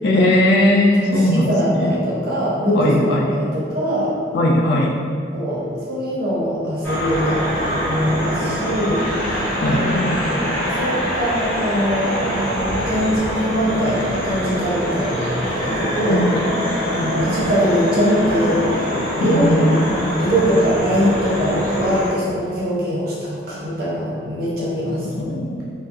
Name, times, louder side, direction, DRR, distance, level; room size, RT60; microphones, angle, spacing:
voice 1, 0.0-1.5 1.8-1.9 2.7-3.2 4.3-4.9 9.6-10.2 16.1-16.2 19.2-19.8 25.2-25.6, left 1 dB, 65° left, 0 dB, 0.3 m, -18 dB
voice 2, 1.1-4.1 5.3-9.3 9.6-9.9 10.8-15.2 15.6-16.2 16.9-18.8 19.1-19.8 20.2-25.1, equal, 60° right, -7 dB, 0.7 m, -22 dB
sound 1, 6.8-22.1, equal, 10° left, 0.7 m, -24 dB
2.3 x 2.1 x 2.5 m, 2.3 s
head